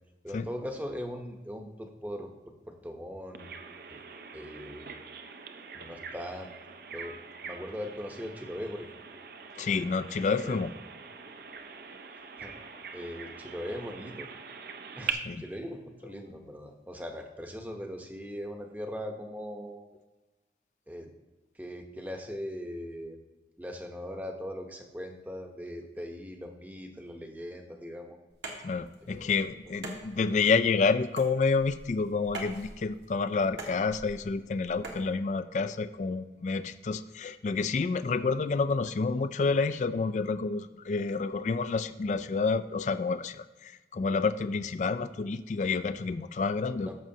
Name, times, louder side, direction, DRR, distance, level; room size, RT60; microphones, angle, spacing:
voice 1, 0.2-2.3 2.7-3.5 3.9-4.0 4.3-4.9 5.7-6.5 6.9-8.9 10.4-10.6 12.4-12.6 12.9-14.3 15.0-19.9 20.9-21.1 21.5-23.2 23.6-28.2 29.0-29.3 46.6-47.0, equal, 10° right, 3 dB, 0.8 m, -40 dB
Bird vocalization bird call bird song, 3.3-15.1, right 6 dB, 55° right, 0.6 m, -43 dB
voice 2, 9.6-10.7 15.1-15.4 28.6-46.9, left 4 dB, 40° left, 12 dB, 0.3 m, -29 dB
sound 1, 28.3-35.1, right 2 dB, 80° right, 1.6 m, -45 dB
14.0 x 6.1 x 2.8 m, 1.2 s
head